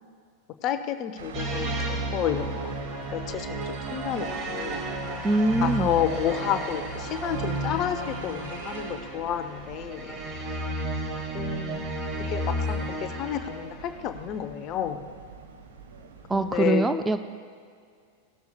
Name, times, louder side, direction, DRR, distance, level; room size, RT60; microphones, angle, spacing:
voice 1, 0.6-2.8 3.1-4.9 5.6-10.2 11.3-11.8 12.3-15.1 16.3-16.8, left 10 dB, 35° left, 9 dB, 0.7 m, -30 dB
sound 1, 1.2-16.6, right 5 dB, 65° right, 1.1 m, -46 dB
sound 2, 1.3-13.9, right 1 dB, 30° right, 1.7 m, -32 dB
voice 2, 5.2-5.9 16.3-17.2, right 2 dB, 10° right, 9 dB, 0.4 m, -23 dB
18.5 x 12.5 x 2.2 m, 2.1 s
figure-of-eight pair, 90°, 0 cm